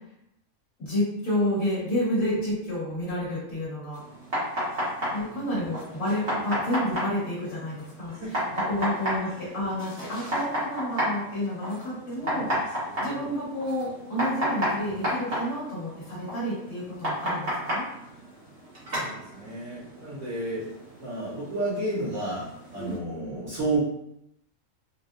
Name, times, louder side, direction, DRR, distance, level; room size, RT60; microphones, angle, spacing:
voice 1, 0.8-4.0 5.1-17.8 22.8-22.9, left 1 dB, 70° left, -8 dB, 1.7 m, -30 dB
sound 1, 3.9-23.0, equal, 50° right, 1.6 m, -33 dB
voice 2, 5.0-5.4 8.1-8.3 9.5-9.6 12.2-12.5 12.9-13.3 18.9-20.7 21.0-22.5 22.7-23.8, right 2 dB, 80° right, -13 dB, 1.8 m, -32 dB
4.2 x 2.1 x 2.6 m, 0.79 s
omnidirectional pair, 1.5 m